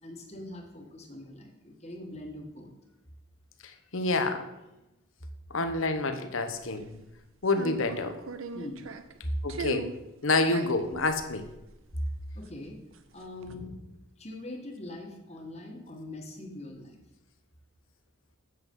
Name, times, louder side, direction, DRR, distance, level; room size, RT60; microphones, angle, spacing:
voice 1, 0.0-2.7 8.5-8.8 9.2-9.4 11.9-12.8 13.1-13.9 14.2-17.0, equal, 30° left, 2 dB, 1.5 m, -40 dB
voice 2, 3.9-4.4 5.5-6.9 7.4-8.1 9.4-9.9 10.2-11.4, left 3 dB, 80° left, 8 dB, 1.0 m, -27 dB
sound 1, 6.6-7.0 7.5-9.2 9.5-10.0 10.4-12.7 12.9-13.5, right 4 dB, 80° right, 0.7 m, -39 dB
7.9 x 7.7 x 5.4 m, 0.97 s
head